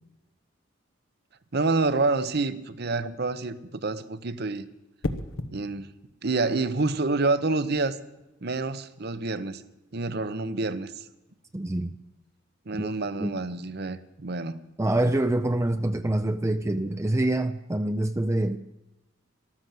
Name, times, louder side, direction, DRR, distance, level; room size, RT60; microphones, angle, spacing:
voice 1, 1.5-3.6 3.8-4.7 5.5-5.9 6.2-8.0 8.4-9.6 9.9-10.9 12.7-14.6, right 3 dB, 55° right, 0.9 m, -27 dB
sound 1, 2.2-2.5 5.0-5.6 7.5-7.8, left 2 dB, 85° left, 1.0 m, -33 dB
voice 2, 11.5-11.9 12.8-12.9 13.2-13.4 14.8-18.6, right 1 dB, 15° right, 0.5 m, -26 dB
13.5 x 13.0 x 7.6 m
head